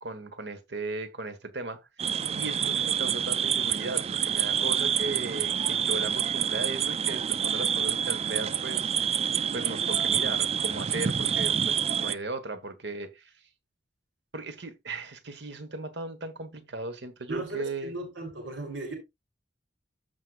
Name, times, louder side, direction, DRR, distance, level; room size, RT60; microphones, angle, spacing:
voice 1, 0.0-9.2 9.5-13.3 14.3-17.9, right 3 dB, 65° right, 1.4 m, -37 dB
sound 1, 2.0-12.2, right 8 dB, 35° right, 0.3 m, -27 dB
voice 2, 17.3-18.9, right 2 dB, 90° right, 3.5 m, -36 dB
14.5 x 4.8 x 2.5 m
head